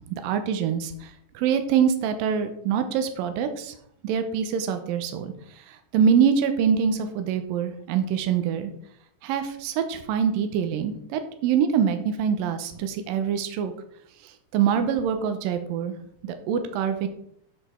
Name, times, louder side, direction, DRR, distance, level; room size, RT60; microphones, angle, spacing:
voice 1, 0.1-3.7 4.0-5.3 5.7-8.7 9.2-13.7 14.5-16.0 16.2-17.1, right 7 dB, 75° right, 8 dB, 2.4 m, -25 dB
12.5 x 5.1 x 4.4 m, 0.71 s
omnidirectional pair, 4.5 m